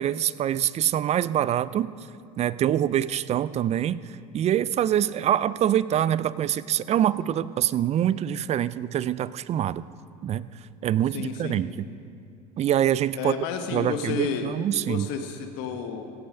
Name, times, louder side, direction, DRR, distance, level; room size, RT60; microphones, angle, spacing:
voice 1, 0.0-1.9 2.4-4.0 4.3-9.8 10.2-10.5 10.8-11.9 12.6-13.3 13.7-15.1, right 11 dB, 35° right, 18 dB, 0.4 m, -25 dB
voice 2, 11.1-11.6 13.2-14.5 14.8-16.0, left 6 dB, 60° left, 6 dB, 1.2 m, -31 dB
16.0 x 8.4 x 6.5 m, 2.4 s
hypercardioid pair, 80°, 20 cm